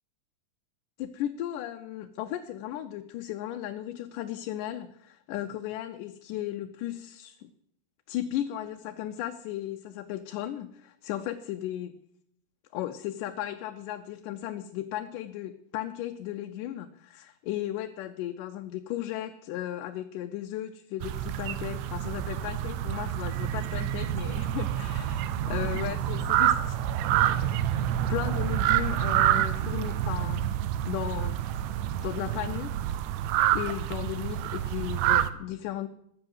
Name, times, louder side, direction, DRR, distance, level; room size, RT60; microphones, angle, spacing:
voice 1, 1.0-7.5 8.1-12.0 12.7-26.8 28.1-30.6 30.9-31.4 32.0-32.7 33.5-35.9, left 12 dB, 85° left, 6 dB, 2.3 m, -35 dB
sound 1, 21.0-35.3, right 11 dB, 75° right, 1.8 m, -28 dB
13.5 x 7.9 x 8.0 m, 0.73 s
omnidirectional pair, 3.7 m